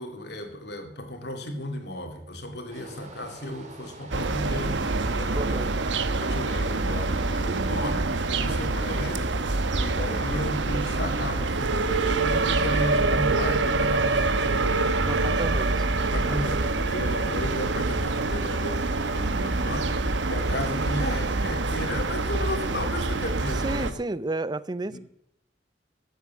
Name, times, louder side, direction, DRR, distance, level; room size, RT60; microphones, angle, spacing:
voice 1, 0.0-5.8 6.2-8.1 8.4-14.9 16.0-24.0 24.9-25.0, left 1 dB, 65° left, 5 dB, 2.6 m, -34 dB
sound 1, 2.7-21.6, right 2 dB, 40° right, 2.5 m, -47 dB
sound 2, 4.1-23.9, right 3 dB, 85° right, 0.9 m, -26 dB
voice 2, 5.4-5.7 15.0-15.9 23.6-25.0, right 2 dB, 25° right, 17 dB, 0.5 m, -31 dB
13.5 x 8.3 x 7.6 m, 0.79 s
head